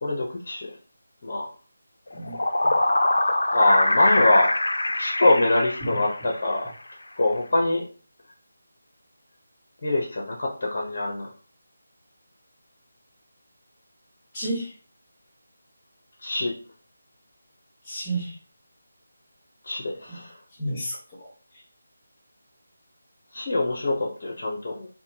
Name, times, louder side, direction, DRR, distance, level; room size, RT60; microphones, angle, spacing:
voice 1, 0.0-0.7 1.2-1.5 3.5-4.5 5.0-6.7 7.2-7.9 9.8-11.3 16.2-16.5 19.6-20.4 23.3-24.9, left 2 dB, 45° left, -1 dB, 0.8 m, -24 dB
sound 1, 2.1-6.5, left 2 dB, 70° left, 0.4 m, -24 dB
voice 2, 14.3-14.7 17.8-18.4 20.1-20.2 20.6-21.3 21.5-21.6, right 1 dB, 20° left, -4 dB, 1.5 m, -31 dB
3.5 x 2.2 x 2.8 m, 0.37 s
figure-of-eight pair, 165°, 0 cm